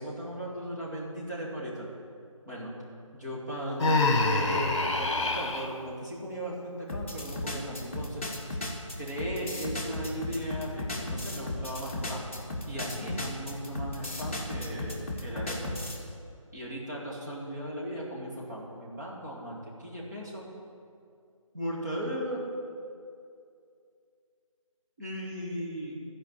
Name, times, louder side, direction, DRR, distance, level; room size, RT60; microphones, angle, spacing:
voice 1, 0.0-1.9 2.5-2.7 3.1-8.3 9.0-12.3 12.7-15.7 16.5-20.4 21.5-22.4 25.0-25.9, equal, 35° right, -6 dB, 2.2 m, -37 dB
Human voice, 3.8-5.7, left 2 dB, 55° left, 1.2 m, -26 dB
sound 1, 6.9-16.0, left 1 dB, 25° left, 1.2 m, -35 dB
15.0 x 5.0 x 7.2 m, 2.4 s
figure-of-eight pair, 180°, 18 cm